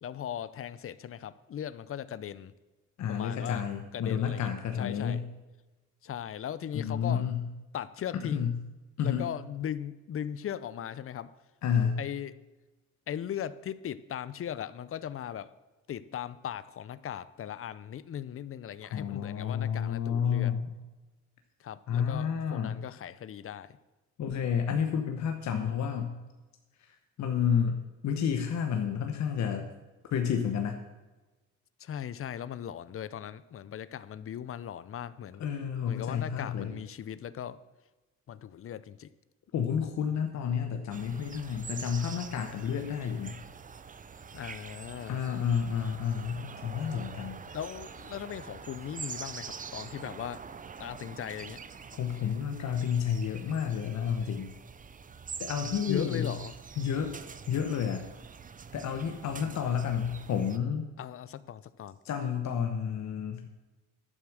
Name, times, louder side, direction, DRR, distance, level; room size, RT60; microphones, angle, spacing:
voice 1, 0.0-2.5 3.1-3.6 3.9-4.5 4.7-5.2 6.0-7.3 7.7-8.5 9.0-11.3 12.0-12.3 13.1-15.5 15.9-20.5 21.6-23.8 31.8-35.4 35.9-37.6 38.3-39.1 44.3-45.2 47.5-50.4 50.8-51.6 55.9-56.5 61.0-62.0, left 9 dB, 45° left, 17 dB, 0.6 m, -38 dB
voice 2, 3.0-5.2 6.7-7.4 8.3-8.5 9.0-9.3 11.6-12.0 18.9-20.7 21.9-22.8 24.2-26.1 27.2-29.7 30.1-30.8 35.4-36.7 39.5-43.4 45.1-47.4 52.0-54.5 55.4-56.3 56.8-57.1 57.5-58.0 58.7-60.8 62.0-63.5, left 7 dB, 65° left, 5 dB, 1.1 m, -30 dB
sound 1, 40.9-60.6, right 6 dB, 25° right, 0.6 m, -45 dB
11.0 x 7.3 x 6.2 m, 1.2 s
cardioid pair, 90°, 30 cm